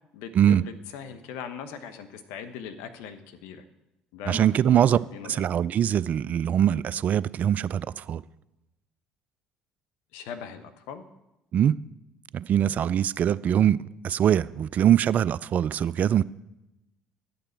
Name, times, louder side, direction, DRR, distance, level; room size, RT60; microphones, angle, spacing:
voice 1, 0.1-3.6 4.1-5.5 10.1-11.0, left 7 dB, 70° left, 1.0 m, -40 dB
voice 2, 4.3-5.0 5.2-8.2 11.5-11.8 12.3-13.8 14.0-16.2, right 10 dB, 45° right, 0.3 m, -22 dB
11.0 x 8.7 x 4.5 m
hypercardioid pair, 60°, 4 cm